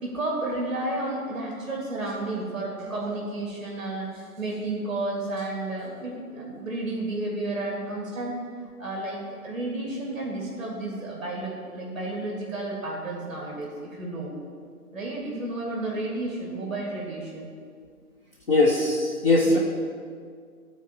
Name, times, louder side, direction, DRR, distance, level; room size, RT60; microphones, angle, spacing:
voice 1, 0.0-8.4 8.8-14.3 14.9-17.5 19.4-19.6, right 2 dB, ahead, -3 dB, 1.6 m, -32 dB
voice 2, 18.5-19.6, left 2 dB, 40° left, -2 dB, 1.1 m, -20 dB
13.0 x 4.5 x 7.3 m, 2.1 s
figure-of-eight pair, 155°, 46 cm